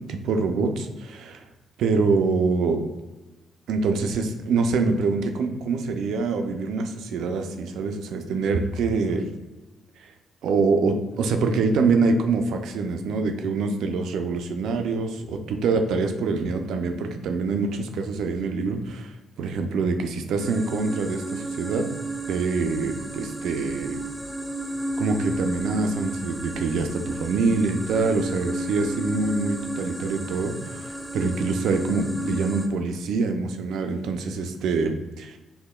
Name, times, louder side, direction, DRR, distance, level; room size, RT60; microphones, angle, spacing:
voice 1, 0.0-1.4 1.8-2.8 3.7-9.3 10.4-19.1 19.4-21.9 22.3-24.0 25.0-35.4, right 4 dB, 75° right, 6 dB, 0.4 m, -25 dB
sound 1, 20.4-32.7, right 2 dB, 10° right, 0.4 m, -32 dB
5.4 x 2.2 x 2.2 m, 1.1 s
cardioid pair, 90°, 0 cm